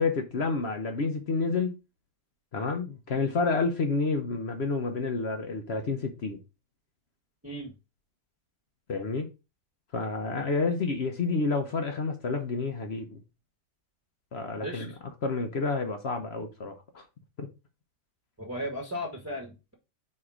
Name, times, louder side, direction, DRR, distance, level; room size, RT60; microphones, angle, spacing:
voice 1, 0.0-1.8 2.5-6.4 8.9-9.3 9.9-13.2 14.3-14.9 15.2-17.0 17.4-17.5, left 4 dB, 50° left, 0.8 m, -29 dB
voice 2, 18.4-19.7, equal, 10° right, 1.3 m, -36 dB
4.7 x 4.3 x 4.9 m
omnidirectional pair, 1.8 m